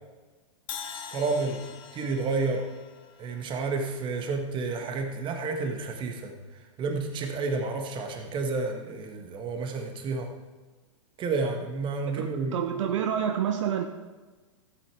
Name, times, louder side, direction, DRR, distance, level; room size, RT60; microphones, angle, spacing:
Crash cymbal, 0.7-4.7, left 7 dB, 30° left, 1.2 m, -44 dB
voice 1, 1.1-1.7 1.9-2.7 3.2-6.4 6.8-10.3 11.2-12.9, right 3 dB, 30° right, 4 dB, 1.7 m, -30 dB
voice 2, 12.5-13.9, right 9 dB, 65° right, 6 dB, 0.9 m, -27 dB
15.0 x 8.6 x 3.5 m, 1.3 s
hypercardioid pair, 110°, 17 cm